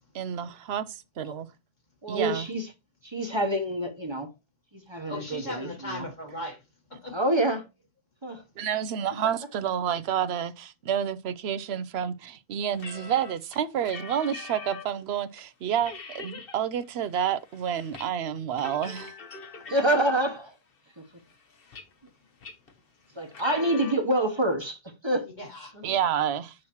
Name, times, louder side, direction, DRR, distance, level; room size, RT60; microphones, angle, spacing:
voice 1, 0.1-1.5 2.1-2.5 8.6-19.1 25.8-26.5, right 9 dB, 85° right, 0.9 m, -29 dB
voice 2, 2.0-2.7 3.0-4.3 4.9-6.0 7.1-7.7 8.2-8.4 19.7-20.4 23.2-25.3, right 1 dB, 25° right, 1.0 m, -26 dB
voice 3, 5.1-6.6 6.9-7.2 23.5-23.9 25.3-25.8, left 1 dB, 45° left, 1.6 m, -38 dB
sound 1, 12.7-15.0 15.4-15.5 15.8-16.6 16.9-18.1 18.4-20.4 21.0-22.1 22.4-22.7 23.3-23.9, left 5 dB, 65° left, 1.3 m, -42 dB
7.1 x 6.4 x 3.0 m
omnidirectional pair, 1.1 m